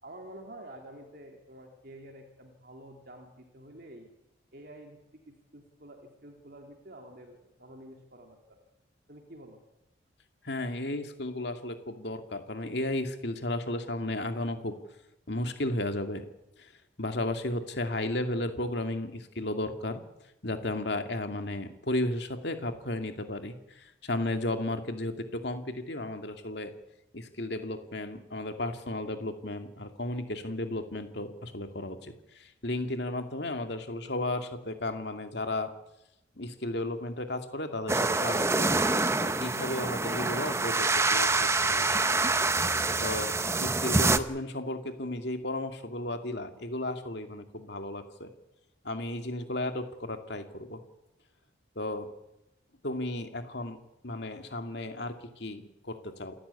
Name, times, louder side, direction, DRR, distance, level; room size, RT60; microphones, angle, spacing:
voice 1, 0.0-4.1 4.5-5.0 5.3-8.6 9.1-9.6, right 1 dB, 50° right, 2 dB, 2.9 m, -49 dB
voice 2, 10.4-14.8 15.3-16.2 16.6-16.7 17.0-20.0 20.4-26.7 27.1-35.7 36.4-38.8 39.2-41.9 43.0-48.3 48.8-50.8 51.8-52.1 52.8-53.8 54.0-56.3, left 1 dB, 60° left, 6 dB, 2.4 m, -34 dB
sound 1, 37.9-44.2, right 3 dB, 15° right, 0.8 m, -26 dB
28.0 x 13.0 x 9.8 m, 0.91 s
head